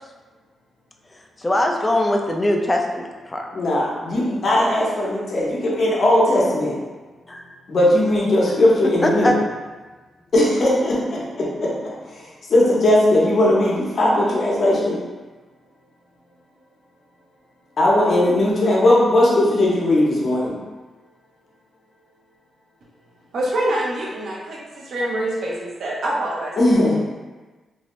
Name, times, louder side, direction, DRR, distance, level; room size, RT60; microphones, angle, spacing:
voice 1, 1.4-3.5 7.3-7.4 9.0-9.3, left 1 dB, 20° left, 2 dB, 0.3 m, -21 dB
voice 2, 3.5-6.8 7.7-9.3 10.3-11.7 12.1-12.2 12.5-15.0 17.8-20.6 26.6-27.0, left 1 dB, 55° left, -5 dB, 0.7 m, -18 dB
voice 3, 23.3-24.6 24.8-26.5, right 1 dB, 70° right, -3 dB, 0.6 m, -25 dB
2.6 x 2.1 x 3.0 m, 1.3 s
cardioid pair, 100°, 0 cm